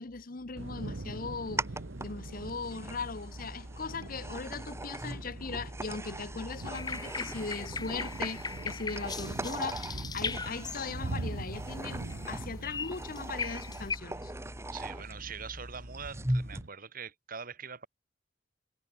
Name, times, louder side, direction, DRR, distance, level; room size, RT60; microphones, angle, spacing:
voice 1, 0.0-1.7 2.0-14.3, left 4 dB, 50° left, 1.0 m, -39 dB
Thunder / Rain, 0.5-16.7, right 2 dB, 90° right, 1.0 m, -44 dB
sound 1, 0.6-16.6, right 1 dB, 15° right, 2.5 m, -40 dB
sound 2, 6.7-11.2 11.7-12.3 12.6-14.0, left 5 dB, 20° left, 1.3 m, -39 dB
voice 2, 14.7-17.9, right 6 dB, 50° right, 2.0 m, -43 dB
head